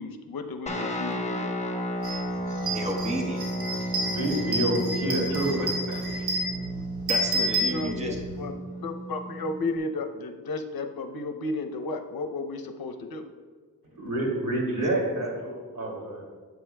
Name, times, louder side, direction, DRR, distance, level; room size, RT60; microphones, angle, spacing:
voice 1, 0.0-1.5 7.7-8.5 8.8-13.2, left 2 dB, 75° left, 6 dB, 0.7 m, -33 dB
Guitar, 0.7-9.8, right 1 dB, 20° left, 0.9 m, -33 dB
sound 1, 2.0-2.2 2.5-8.4, right 1 dB, 85° right, 1.7 m, -30 dB
voice 2, 2.7-3.5 7.1-8.2 14.8-14.9, right 1 dB, 20° right, 1 dB, 1.1 m, -32 dB
voice 3, 4.0-6.3 14.0-16.4, right 1 dB, 65° right, -3 dB, 2.5 m, -29 dB
11.5 x 7.7 x 2.2 m, 1.5 s
wide cardioid pair, 100°, 36 cm